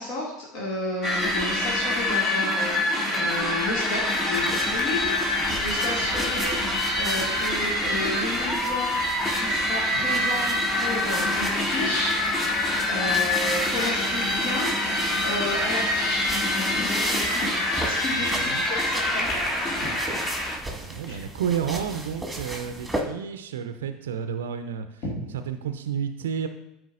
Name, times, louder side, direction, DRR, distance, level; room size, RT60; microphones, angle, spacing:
voice 1, 0.0-8.9 9.3-12.2 12.9-14.7 15.2-20.4 21.1-21.2 25.0-25.1, left 1 dB, 55° left, -4 dB, 1.8 m, -33 dB
sound 1, 1.0-20.6, left 1 dB, 35° left, 2.1 m, -25 dB
sound 2, 4.3-23.0, right 1 dB, 5° right, 1.7 m, -36 dB
voice 2, 18.2-18.7 20.8-25.0 25.5-26.5, right 8 dB, 75° right, 8 dB, 0.4 m, -31 dB
13.0 x 4.6 x 2.5 m, 0.83 s
figure-of-eight pair, 70°, 0 cm